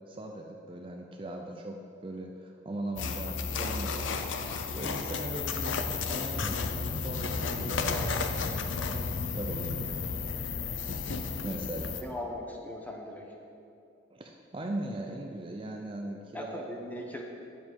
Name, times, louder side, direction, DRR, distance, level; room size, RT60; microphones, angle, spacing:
voice 1, 0.1-1.8 2.0-4.1 4.4-4.5 4.7-9.1 9.3-9.9 11.4-12.0 14.1-16.6, right 1 dB, 25° right, 2 dB, 0.5 m, -39 dB
sound 1, 3.0-12.0, left 4 dB, 80° left, 0.6 m, -33 dB
voice 2, 12.0-13.3 16.3-17.2, left 1 dB, 10° left, 0 dB, 0.9 m, -39 dB
9.2 x 7.4 x 4.6 m, 2.6 s
head